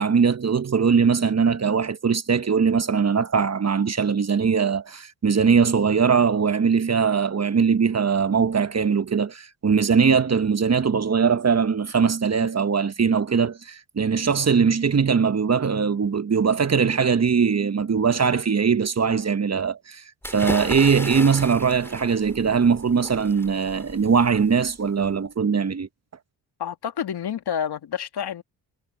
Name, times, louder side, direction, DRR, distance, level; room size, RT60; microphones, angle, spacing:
voice 1, 0.0-25.9, right 6 dB, 35° right, 1.4 m, -21 dB
sound 1, 20.2-25.1, left 1 dB, 5° left, 3.8 m, -36 dB
voice 2, 26.6-28.4, left 8 dB, 55° left, 2.4 m, -29 dB
hypercardioid pair, 50°, 45 cm